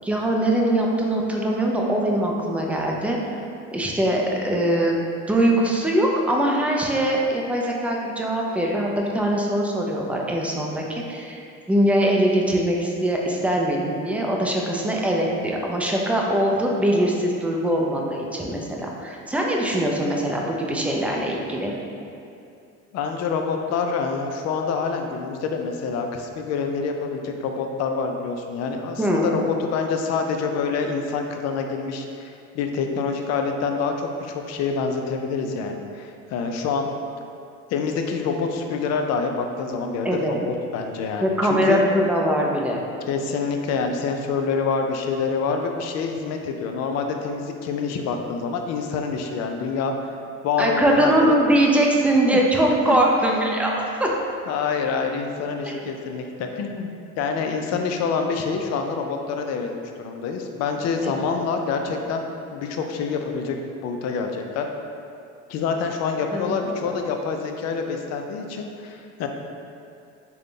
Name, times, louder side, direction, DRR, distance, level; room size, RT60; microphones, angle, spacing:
voice 1, 0.0-3.2 3.7-5.0 5.3-11.4 11.7-21.7 29.0-29.3 40.0-40.4 41.2-42.8 50.6-54.1 55.6-55.8 61.0-61.1 66.3-67.0, right 1 dB, 5° right, -1 dB, 0.4 m, -22 dB
voice 2, 22.9-36.9 37.7-41.8 43.1-49.9 50.4-51.3 52.3-52.4 52.9-53.0 54.5-56.9 57.2-59.7 60.0-63.6 63.8-64.7 65.5-69.3, left 5 dB, 60° left, 4 dB, 0.4 m, -26 dB
3.5 x 2.2 x 3.8 m, 2.5 s
cardioid pair, 100°, 30 cm